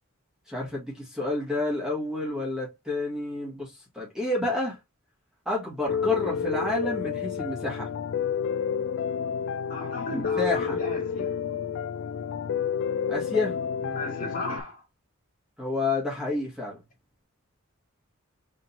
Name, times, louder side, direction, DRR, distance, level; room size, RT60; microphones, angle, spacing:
voice 1, 0.5-4.8 5.5-7.9 10.1-10.8 13.1-14.0 15.6-16.8, left 2 dB, 5° right, 1.8 m, -30 dB
Piano, 5.9-14.6, left 7 dB, 60° left, 0.3 m, -30 dB
voice 2, 9.7-11.3 13.9-14.8, left 2 dB, 40° left, 2.2 m, -35 dB
5.0 x 3.7 x 2.8 m
head